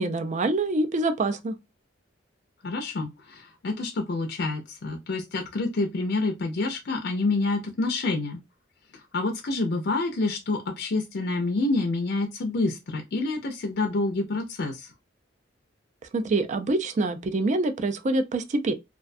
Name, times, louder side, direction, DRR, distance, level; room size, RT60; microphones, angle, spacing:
voice 1, 0.0-1.5 16.1-18.7, right 2 dB, 40° right, 0.4 m, -25 dB
voice 2, 2.6-8.4 9.1-14.9, left 3 dB, 60° left, 0.5 m, -28 dB
2.4 x 2.2 x 2.5 m
head